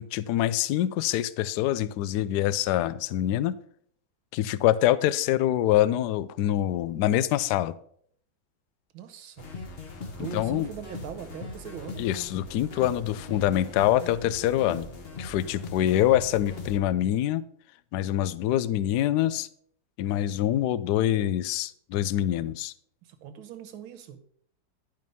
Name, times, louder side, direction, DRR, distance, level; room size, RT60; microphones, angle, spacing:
voice 1, 0.0-3.6 4.3-7.7 10.2-10.7 12.0-14.9 15.2-17.4 17.9-19.5 20.0-22.7, left 12 dB, 75° left, 16 dB, 0.9 m, -25 dB
voice 2, 8.9-9.5 10.1-12.1 23.0-24.2, right 9 dB, 80° right, 8 dB, 1.8 m, -41 dB
sound 1, 9.4-16.8, left 3 dB, 40° left, 1.0 m, -40 dB
11.0 x 5.3 x 5.4 m, 0.64 s
omnidirectional pair, 2.2 m